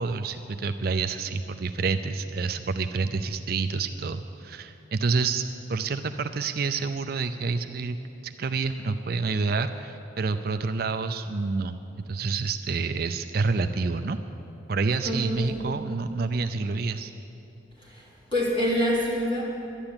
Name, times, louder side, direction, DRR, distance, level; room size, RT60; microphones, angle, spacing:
voice 1, 0.0-5.4 5.7-8.0 8.2-14.2 14.7-17.1, right 4 dB, 50° right, 8 dB, 0.4 m, -28 dB
voice 2, 15.0-15.6 17.8-19.4, equal, 25° left, -5 dB, 3.3 m, -27 dB
11.5 x 11.5 x 8.8 m, 2.9 s
head